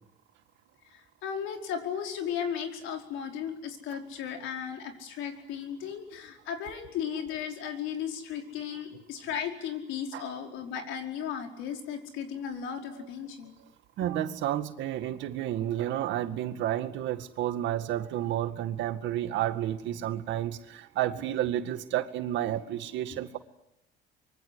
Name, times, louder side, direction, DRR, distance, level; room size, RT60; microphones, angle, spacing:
voice 1, 0.9-13.5 14.0-14.1 23.1-23.2, left 8 dB, 80° left, 5.1 m, -35 dB
voice 2, 14.0-23.4, right 12 dB, 70° right, 2.0 m, -31 dB
25.0 x 23.5 x 9.8 m
cardioid pair, 135°, 20 cm